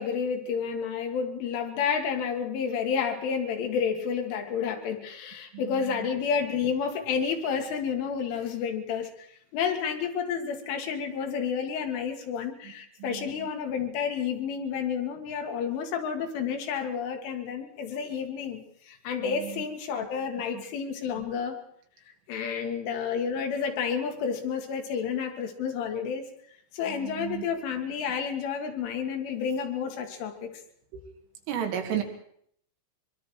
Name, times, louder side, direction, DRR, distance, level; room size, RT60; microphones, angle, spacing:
voice 1, 0.0-9.3 9.5-21.6 22.3-26.3 26.7-30.5, left 6 dB, 80° left, 3 dB, 4.5 m, -30 dB
voice 2, 5.5-6.1 13.0-13.5 19.2-19.6 20.5-20.6 21.1-21.2 26.8-27.4 30.9-31.0 31.5-32.0, right 10 dB, 85° right, 4 dB, 4.7 m, -34 dB
23.5 x 23.0 x 4.8 m, 0.66 s
omnidirectional pair, 5.6 m